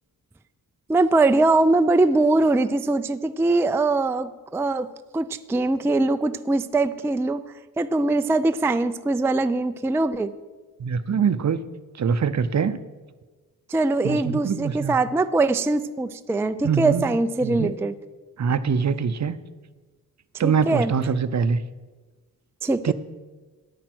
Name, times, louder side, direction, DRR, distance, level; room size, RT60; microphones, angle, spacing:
voice 1, 0.9-4.9 5.1-7.4 7.8-10.3 13.7-17.9 20.4-20.9 22.6-22.9, right 2 dB, 5° right, 10 dB, 0.3 m, -22 dB
voice 2, 10.8-11.6 12.0-12.8 14.0-14.9 16.6-17.1 17.4-17.7 18.4-19.4 20.4-21.6 22.8-22.9, right 6 dB, 50° right, 14 dB, 0.6 m, -23 dB
10.5 x 9.0 x 6.0 m, 1.3 s
wide cardioid pair, 100°, 36 cm